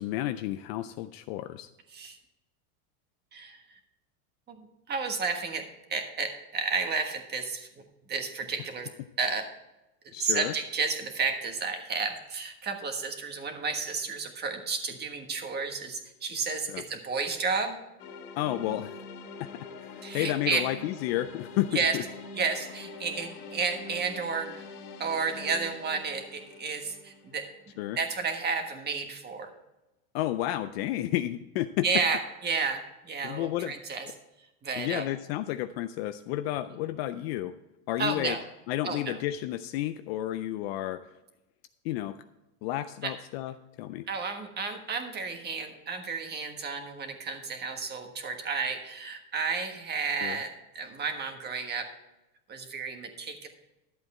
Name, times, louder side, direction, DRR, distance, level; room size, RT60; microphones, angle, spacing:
voice 1, 0.0-1.7 10.1-10.5 16.7-16.8 18.4-19.0 19.4-19.5 19.9-22.0 27.8-28.0 30.1-31.8 33.2-33.7 34.8-37.5 37.9-38.4 38.7-41.0 41.8-42.2 42.6-44.1 50.2-50.4, left 14 dB, 45° left, 11 dB, 0.4 m, -31 dB
voice 2, 3.3-3.8 4.5-7.7 8.1-8.9 9.2-9.5 10.0-17.8 20.0-20.6 21.7-22.0 22.3-24.6 25.0-27.5 28.0-29.5 31.8-34.1 34.6-35.0 36.7-36.8 38.0-38.4 38.8-39.2 43.0-43.1 44.1-51.9 52.5-53.5, right 5 dB, 20° right, 6 dB, 1.4 m, -32 dB
sound 1, 18.0-28.0, left 3 dB, 80° left, 2.0 m, -45 dB
12.0 x 7.9 x 4.2 m, 0.98 s
supercardioid pair, 140°, 45 cm